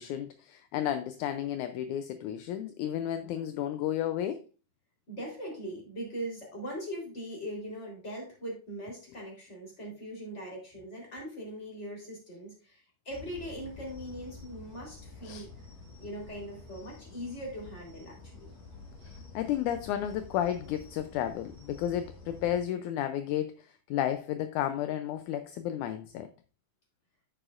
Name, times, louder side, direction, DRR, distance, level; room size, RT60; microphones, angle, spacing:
voice 1, 0.0-4.4 15.3-15.5 19.0-26.3, left 11 dB, 80° left, 1.9 m, -32 dB
voice 2, 5.1-15.7 16.0-18.5, equal, 20° left, 3.7 m, -41 dB
sound 1, 13.1-22.6, left 3 dB, 60° left, 5.6 m, -49 dB
9.9 x 8.8 x 2.5 m
omnidirectional pair, 3.7 m